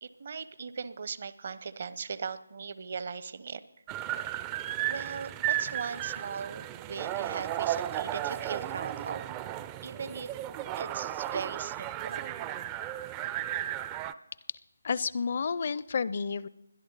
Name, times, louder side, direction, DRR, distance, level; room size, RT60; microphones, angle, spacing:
voice 1, 0.0-3.6 4.8-9.2 9.8-10.3 10.8-12.3, right 5 dB, 45° right, 15 dB, 0.7 m, -39 dB
sound 1, 3.9-14.1, right 12 dB, 15° right, 0.4 m, -34 dB
voice 2, 14.8-16.5, left 5 dB, 45° left, 20 dB, 0.5 m, -30 dB
21.0 x 11.5 x 3.9 m, 0.93 s
figure-of-eight pair, 155°, 0 cm